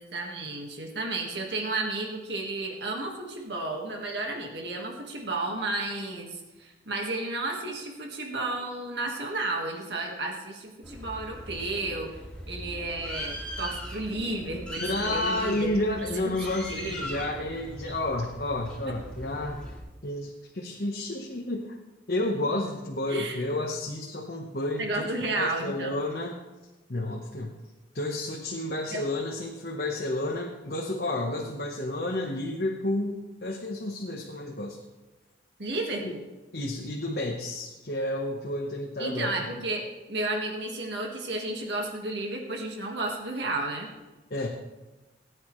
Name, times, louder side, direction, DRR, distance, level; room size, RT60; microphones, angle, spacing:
voice 1, 0.0-12.1 12.5-15.7 16.3-17.1 23.1-23.3 24.8-26.0 28.9-29.0 35.6-36.2 39.0-39.8 40.1-43.9, right 2 dB, 75° right, 1 dB, 1.7 m, -32 dB
Bird, 10.8-19.8, equal, 5° left, 2.6 m, -39 dB
voice 2, 14.8-19.6 20.0-21.8 22.1-26.3 26.9-27.6 27.9-34.8 36.0-36.1 36.5-39.4 44.3-44.5, left 1 dB, 55° left, 0 dB, 1.2 m, -31 dB
19.0 x 9.5 x 3.2 m, 1.1 s
head